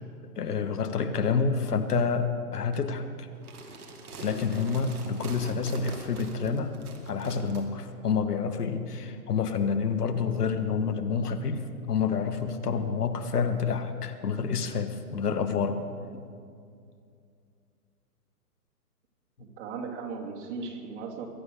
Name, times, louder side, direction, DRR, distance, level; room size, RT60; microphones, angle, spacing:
voice 1, 0.3-3.3 4.2-6.8 7.1-15.8 16.1-16.3, left 5 dB, 75° left, 8 dB, 1.5 m, -28 dB
sound 1, 3.3-7.6, right 3 dB, 70° right, 2.9 m, -44 dB
voice 2, 19.4-21.3, right 5 dB, 50° right, 0 dB, 2.9 m, -37 dB
22.5 x 9.3 x 6.8 m, 2.4 s
hypercardioid pair, 130°, 46 cm